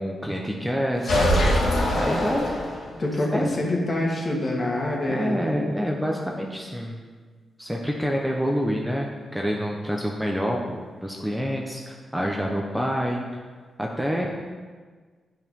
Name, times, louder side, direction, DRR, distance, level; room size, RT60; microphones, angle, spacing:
voice 1, 0.0-1.4 1.9-2.5 3.3-3.6 5.1-7.0 7.6-13.4 13.8-14.3, equal, ahead, -1 dB, 1.1 m, -27 dB
sound 1, 1.0-3.1, left 1 dB, 75° left, 2.8 m, -23 dB
voice 2, 3.0-5.4, left 1 dB, 40° left, -2 dB, 2.4 m, -26 dB
11.0 x 5.6 x 5.5 m, 1.5 s
cardioid pair, 85°, 0 cm